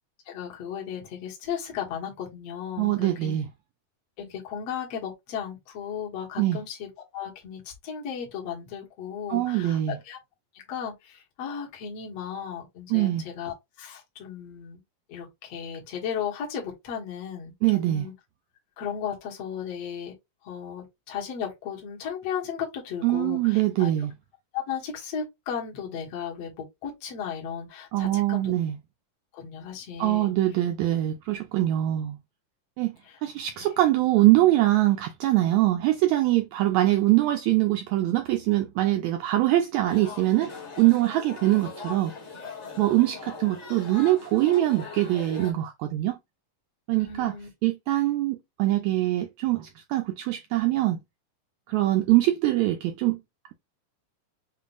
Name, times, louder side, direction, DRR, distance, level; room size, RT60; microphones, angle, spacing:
voice 1, 0.3-3.4 4.2-6.9 7.1-9.8 10.1-10.2 10.7-14.8 15.1-18.1 18.8-20.1 20.4-23.9 24.5-28.5 29.3-30.3 33.1-33.2 33.6-33.7 46.9-47.5, left 8 dB, 55° left, 2.2 m, -35 dB
voice 2, 2.8-3.4 6.4-6.6 9.3-10.0 12.9-13.2 17.6-18.1 23.0-24.1 27.9-28.8 30.0-32.2 32.8-32.9 33.2-42.1 42.8-46.2 46.9-47.4 47.6-51.0 51.7-53.2, right 15 dB, 85° right, 1.6 m, -23 dB
sound 1, 39.8-45.5, left 4 dB, 35° left, 1.2 m, -41 dB
7.0 x 2.5 x 2.5 m
omnidirectional pair, 3.8 m